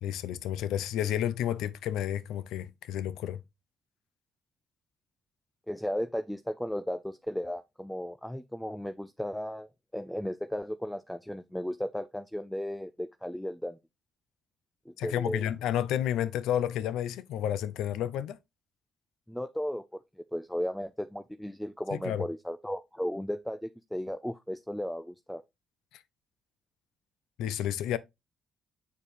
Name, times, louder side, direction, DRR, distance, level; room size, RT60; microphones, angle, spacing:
voice 1, 0.0-3.4 15.0-18.4 21.9-22.2 27.4-28.0, left 11 dB, 90° left, 0.4 m, -31 dB
voice 2, 5.7-9.7 9.9-13.8 14.9-15.5 19.3-19.8 20.2-25.4, equal, 5° left, 0.3 m, -35 dB
7.2 x 4.4 x 3.2 m
cardioid pair, 90°, 0 cm